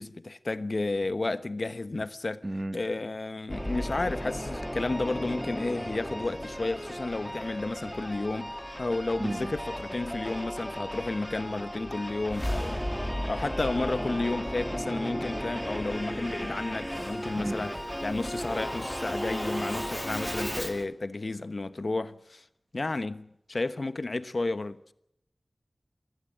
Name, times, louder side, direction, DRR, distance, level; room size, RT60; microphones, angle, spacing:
voice 1, 0.0-2.4 2.7-12.8 13.3-17.7 18.0-22.4 22.7-24.8, left 2 dB, 60° left, 1.1 m, -32 dB
voice 2, 2.4-2.8 9.2-9.5 17.4-17.8, right 1 dB, 30° right, 1.2 m, -33 dB
Singing / Musical instrument, 3.5-20.9, equal, 5° left, 2.2 m, -35 dB
25.0 x 16.5 x 7.9 m
wide cardioid pair, 70°, 0 cm